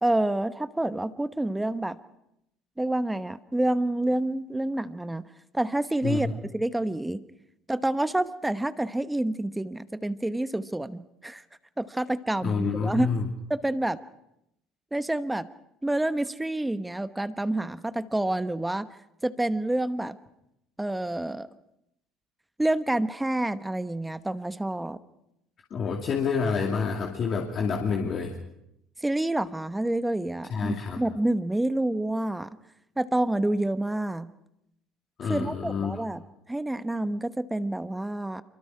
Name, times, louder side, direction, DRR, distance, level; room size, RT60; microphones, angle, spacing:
voice 1, 0.0-2.0 2.8-5.2 5.5-6.3 6.5-7.2 7.7-11.4 11.8-13.1 13.5-14.0 14.9-15.5 15.8-18.9 19.2-20.2 20.8-21.5 22.6-25.0 29.0-32.5 33.0-34.3 35.2-36.2 36.5-38.4, right 1 dB, 10° right, 12 dB, 1.0 m, -28 dB
voice 2, 12.4-13.3 25.7-28.3 30.5-31.0 35.2-36.0, left 5 dB, 45° left, 1 dB, 2.6 m, -28 dB
26.0 x 23.5 x 4.9 m, 0.81 s
hypercardioid pair, 70°, 0 cm